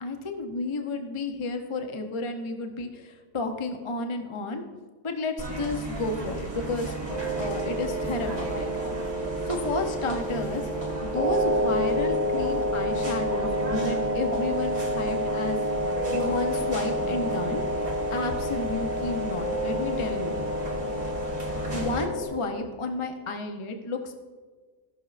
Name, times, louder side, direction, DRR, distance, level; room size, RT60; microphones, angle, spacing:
voice 1, 0.0-4.6 5.0-8.7 9.5-10.6 11.0-15.6 16.1-17.8 18.1-20.5 21.7-24.1, left 3 dB, 45° left, 4 dB, 0.4 m, -32 dB
sound 1, 5.4-22.1, right 2 dB, 25° right, 1.5 m, -35 dB
sound 2, 7.1-22.3, equal, 80° left, 2.6 m, -29 dB
15.5 x 6.2 x 2.4 m, 1.5 s
omnidirectional pair, 1.6 m